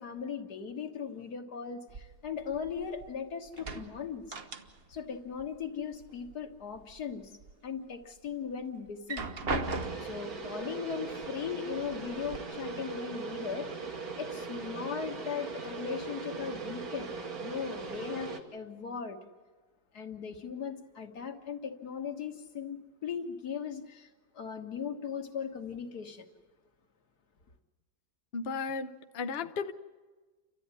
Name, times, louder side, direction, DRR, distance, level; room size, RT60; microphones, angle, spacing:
voice 1, 0.0-4.4 4.9-7.3 7.6-9.2 9.9-13.7 14.2-17.1 17.4-19.2 19.9-24.1 24.3-26.3, left 6 dB, 90° left, 4 dB, 2.1 m, -38 dB
sound 1, 1.9-3.2 3.5-5.1 5.3-6.3 6.7-7.5 8.0-8.1 8.9-10.3 11.2-11.3 11.7-12.4, right 3 dB, 40° right, 1.3 m, -38 dB
sound 2, 9.6-18.4, right 4 dB, 70° right, 2.2 m, -39 dB
voice 2, 28.3-29.7, left 5 dB, 50° left, 8 dB, 1.0 m, -35 dB
30.0 x 13.5 x 9.7 m, 1.3 s
omnidirectional pair, 1.6 m